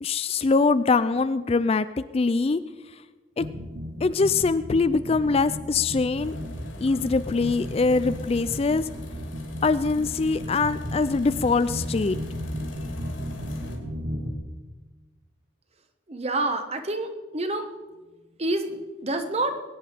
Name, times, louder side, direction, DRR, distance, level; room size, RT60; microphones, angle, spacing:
voice 1, 0.0-2.6 2.9-3.0 3.4-3.5 4.0-6.3 6.8-8.9 9.6-12.2, left 4 dB, 30° left, 13 dB, 0.3 m, -23 dB
sound 1, 3.4-14.3, equal, 60° right, 1.8 m, -35 dB
sound 2, 6.2-13.8, left 1 dB, 85° left, 3.1 m, -41 dB
voice 2, 16.1-17.7 18.4-19.6, right 2 dB, 35° right, 8 dB, 1.1 m, -28 dB
21.5 x 9.7 x 5.0 m, 1.3 s
head